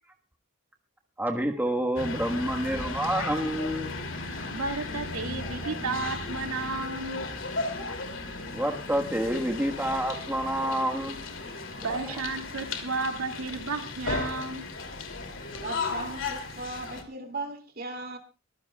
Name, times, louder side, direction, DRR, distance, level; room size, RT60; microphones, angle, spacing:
voice 1, 1.2-3.9 8.5-11.2 11.8-12.0, right 1 dB, 10° right, 1.4 m, -28 dB
sound 1, 2.0-17.0, left 3 dB, 60° left, 2.8 m, -35 dB
voice 2, 4.5-7.2 11.8-14.7, right 4 dB, 85° right, 2.3 m, -33 dB
voice 3, 15.6-18.2, right 3 dB, 45° right, 2.5 m, -37 dB
23.5 x 15.5 x 2.3 m
head